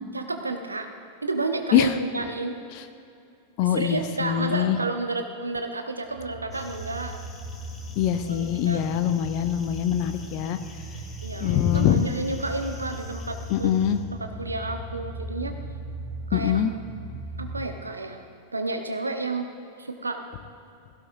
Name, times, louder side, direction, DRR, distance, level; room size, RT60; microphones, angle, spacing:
voice 1, 0.1-0.9 1.2-2.6 3.7-7.2 8.3-8.8 11.2-13.7 14.2-15.6 16.3-16.6 17.4-18.3 18.5-19.5 19.8-20.2, right 3 dB, 80° right, 6 dB, 1.0 m, -31 dB
voice 2, 3.6-4.8 8.0-10.6 11.4-12.0 13.5-14.0 16.3-16.7, left 10 dB, 45° left, 10 dB, 0.7 m, -23 dB
sound 1, 6.0-17.7, right 1 dB, 60° right, 2.8 m, -38 dB
sound 2, 6.5-14.0, left 3 dB, 20° left, 1.8 m, -49 dB
16.5 x 16.5 x 2.7 m, 2.6 s
figure-of-eight pair, 90°, 0 cm